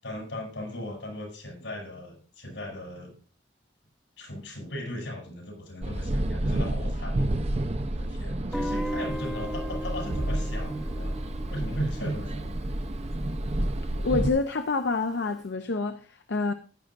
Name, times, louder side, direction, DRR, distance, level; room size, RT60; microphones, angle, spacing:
voice 1, 0.0-3.1 4.2-7.3 7.9-11.1 11.5-12.5, equal, 90° left, 7.7 m, -37 dB
sound 1, 5.8-14.3, right 1 dB, 35° right, 0.7 m, -30 dB
Guitar, 8.5-13.4, equal, ahead, 0.9 m, -37 dB
voice 2, 13.9-16.5, left 3 dB, 70° left, 0.7 m, -27 dB
15.0 x 11.5 x 2.5 m
head